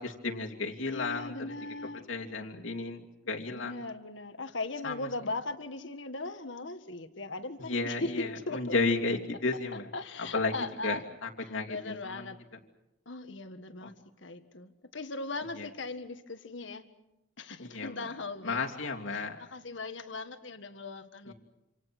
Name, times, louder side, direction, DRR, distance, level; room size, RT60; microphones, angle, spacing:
voice 1, 0.0-1.3 2.1-3.0 3.3-3.7 4.8-4.9 7.7-8.3 8.5-9.9 10.3-10.5 10.8-12.2 13.8-13.9 15.6-15.7 17.6-18.0 18.4-19.4 21.3-21.4, left 3 dB, 90° left, 1 dB, 3.0 m, -33 dB
voice 2, 0.9-2.0 3.5-8.8 9.7-11.0 11.4-12.4 13.1-16.9 17.4-18.6 19.1-21.3, left 2 dB, 70° left, 9 dB, 1.8 m, -39 dB
27.5 x 27.5 x 6.2 m, 0.91 s
head